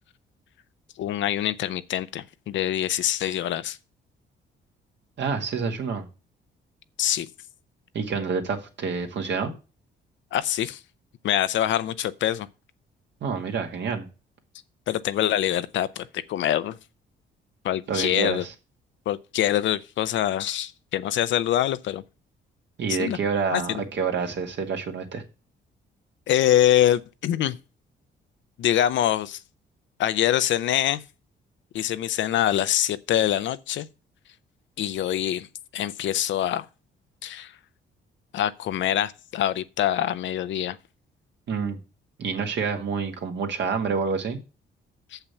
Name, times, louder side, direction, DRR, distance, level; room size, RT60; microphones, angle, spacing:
voice 1, 1.0-3.8 7.0-7.3 10.3-10.8 11.2-12.5 14.9-16.8 17.6-18.4 19.1-22.0 22.9-23.2 23.5-23.8 26.3-27.6 28.6-29.4 30.0-31.0 31.7-33.9 34.8-35.5 35.7-36.7 37.2-37.5 38.3-40.8 45.1-45.2, left 11 dB, 70° left, 0.6 m, -24 dB
voice 2, 5.2-6.1 7.9-9.5 13.2-14.1 17.9-18.5 22.8-25.2 41.5-41.8 42.2-44.4, right 5 dB, 65° right, 2.0 m, -28 dB
6.9 x 5.7 x 7.0 m
cardioid pair, 90°, 20 cm